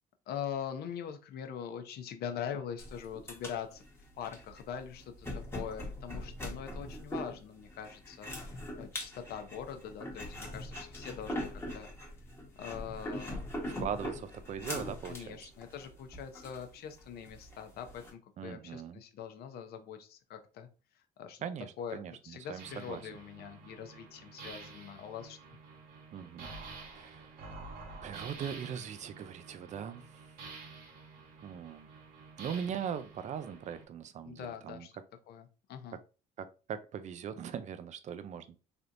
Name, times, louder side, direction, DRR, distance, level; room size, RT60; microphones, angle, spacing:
voice 1, 0.3-3.8 4.2-11.9 12.6-13.3 15.0-20.7 20.9-21.4 21.8-25.4 34.2-34.9 35.3-36.0, left 8 dB, 70° left, 0.7 m, -43 dB
sound 1, 2.8-18.1, left 1 dB, 15° left, 1.0 m, -42 dB
voice 2, 13.7-15.5 18.4-19.0 21.4-23.0 26.1-26.5 26.9-27.5 28.0-30.2 31.4-31.9 32.4-34.9 36.4-38.6, right 8 dB, 45° right, 0.4 m, -40 dB
sound 2, 22.6-33.8, right 4 dB, 65° right, 1.2 m, -49 dB
3.4 x 2.8 x 2.5 m
cardioid pair, 110°, 17 cm